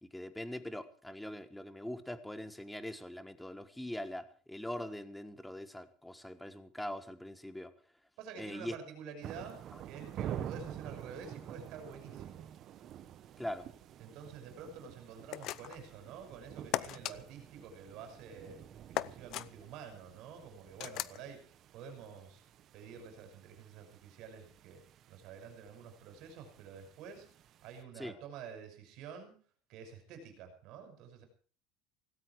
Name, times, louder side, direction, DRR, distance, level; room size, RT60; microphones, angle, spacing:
voice 1, 0.1-7.7 8.4-8.7 13.4-13.7 28.0-28.1, left 1 dB, 5° left, 11 dB, 1.4 m, -42 dB
voice 2, 8.2-12.4 14.0-18.6 18.9-22.4 22.7-24.8 25.1-27.3 27.6-29.4 29.7-31.2, right 6 dB, 50° right, 7 dB, 6.1 m, -49 dB
sound 1, 9.2-27.8, right 10 dB, 35° right, 1.1 m, -49 dB
sound 2, 15.3-15.9 16.7-17.2 18.9-19.5 20.8-21.2, left 14 dB, 45° left, 0.7 m, -36 dB
18.0 x 17.0 x 4.7 m, 0.41 s
cardioid pair, 160°, 0 cm